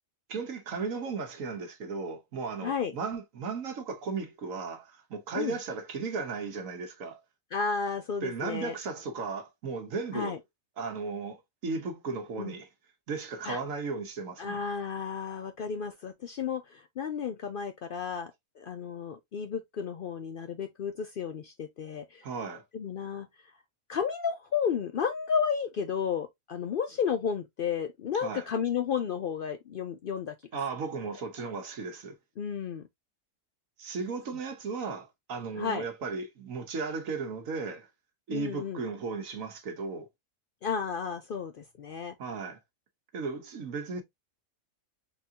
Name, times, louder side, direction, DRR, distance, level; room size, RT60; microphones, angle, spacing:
voice 1, 0.3-7.2 8.2-10.3 10.8-12.7 13.1-14.6 22.2-22.6 28.2-28.5 30.5-32.2 33.8-37.9 38.3-40.1 42.2-42.6 43.1-44.0, right 4 dB, 85° right, 1.4 m, -35 dB
voice 2, 2.6-2.9 5.4-5.6 7.5-8.7 10.1-10.4 12.4-12.5 13.4-13.6 14.4-22.2 22.7-23.3 23.9-30.3 32.4-32.8 35.6-35.8 38.3-38.8 40.6-42.1, left 6 dB, 65° left, 0.5 m, -32 dB
4.1 x 3.7 x 2.7 m
omnidirectional pair, 1.4 m